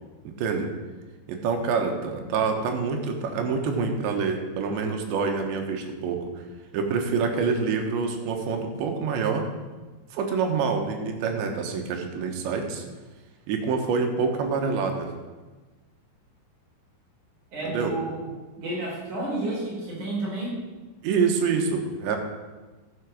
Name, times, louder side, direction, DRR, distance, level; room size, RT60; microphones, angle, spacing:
voice 1, 0.4-0.7 1.3-6.4 6.7-9.4 10.1-12.8 13.5-15.1 17.6-17.9 21.0-22.2, right 5 dB, 85° right, 4 dB, 3.5 m, -26 dB
voice 2, 17.5-18.3 18.6-20.6, right 1 dB, 45° right, -4 dB, 4.7 m, -31 dB
13.5 x 7.0 x 6.5 m, 1.2 s
omnidirectional pair, 5.2 m